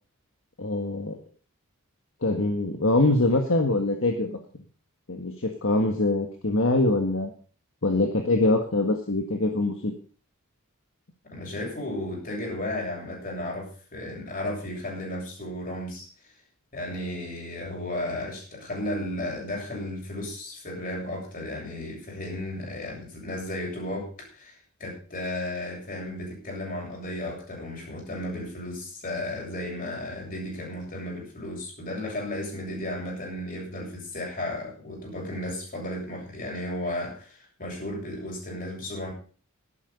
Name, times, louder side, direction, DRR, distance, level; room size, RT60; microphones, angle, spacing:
voice 1, 0.6-1.2 2.2-4.4 5.1-7.3 7.8-9.9, left 2 dB, 65° left, 4 dB, 1.7 m, -24 dB
voice 2, 11.2-16.1 16.7-39.1, left 1 dB, 40° left, -1 dB, 7.5 m, -34 dB
12.0 x 12.0 x 5.5 m, 0.41 s
head